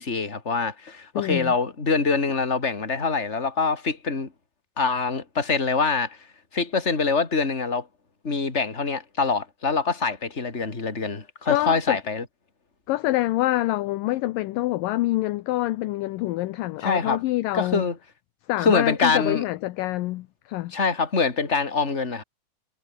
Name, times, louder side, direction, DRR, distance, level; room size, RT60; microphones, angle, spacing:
voice 1, 0.0-4.3 4.8-6.2 6.5-7.9 8.2-12.2 16.8-17.2 17.5-18.0 18.6-19.4 20.7-22.2, left 4 dB, 20° left, 3.2 m, -24 dB
voice 2, 1.2-1.5 11.5-12.0 12.9-17.9 18.5-20.7, left 17 dB, 75° left, 2.1 m, -26 dB
omnidirectional pair, 4.6 m